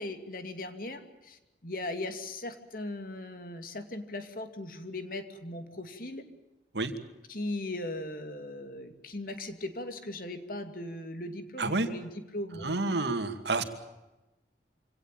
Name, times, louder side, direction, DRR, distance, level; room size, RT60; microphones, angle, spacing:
voice 1, 0.0-6.2 7.3-12.9, left 1 dB, 50° left, 8 dB, 2.6 m, -38 dB
voice 2, 11.6-11.9 12.6-13.6, right 2 dB, 80° right, 8 dB, 2.3 m, -29 dB
26.0 x 18.0 x 9.1 m, 1.0 s
head